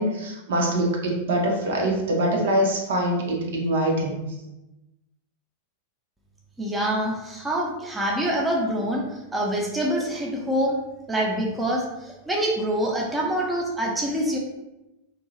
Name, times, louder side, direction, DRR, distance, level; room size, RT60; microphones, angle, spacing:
voice 1, 0.0-4.2, right 1 dB, 60° right, -1 dB, 0.6 m, -24 dB
voice 2, 6.6-9.0 9.3-10.8 11.1-11.8 12.3-14.4, right 1 dB, 10° right, -2 dB, 0.6 m, -25 dB
2.6 x 2.2 x 3.0 m, 0.97 s
figure-of-eight pair, 90°, 0 cm